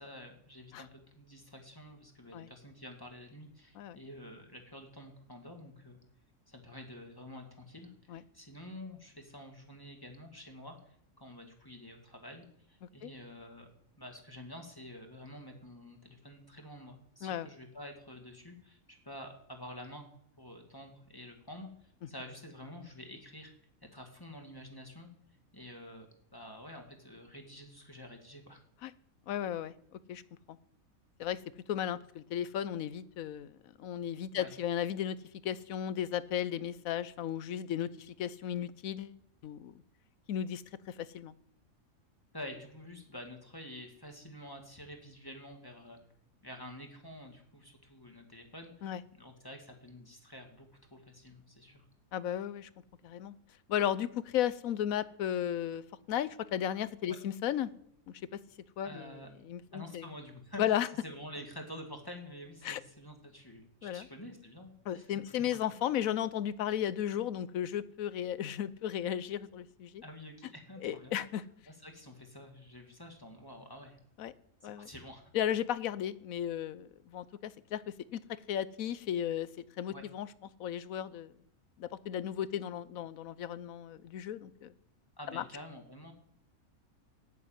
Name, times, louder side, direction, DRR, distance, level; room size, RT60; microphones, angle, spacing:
voice 1, 0.0-6.0 6.5-13.7 14.0-20.1 20.4-23.5 23.9-25.1 25.5-28.6 34.3-34.5 42.3-46.0 46.4-51.9 57.1-57.2 58.8-59.3 59.7-60.8 61.0-65.4 70.0-71.2 71.7-74.0 74.6-75.3 79.9-80.1 85.2-86.1, left 1 dB, 15° left, 3 dB, 2.1 m, -49 dB
voice 2, 29.3-29.7 30.1-30.2 31.2-31.4 31.7-33.5 33.8-35.2 35.4-39.2 39.4-39.7 40.3-40.6 40.9-41.3 48.8-49.0 52.1-52.7 53.0-53.3 53.7-55.8 56.1-57.7 58.8-60.1 60.6-60.9 62.6-62.8 63.8-64.1 64.9-70.0 70.8-71.4 74.2-74.3 74.6-74.9 75.3-77.8 78.1-78.2 78.5-79.5 79.8-80.3 80.6-81.3 81.8-84.7 85.3-85.4, left 10 dB, 80° left, 16 dB, 1.1 m, -34 dB
13.5 x 7.4 x 9.2 m, 0.71 s
omnidirectional pair, 1.4 m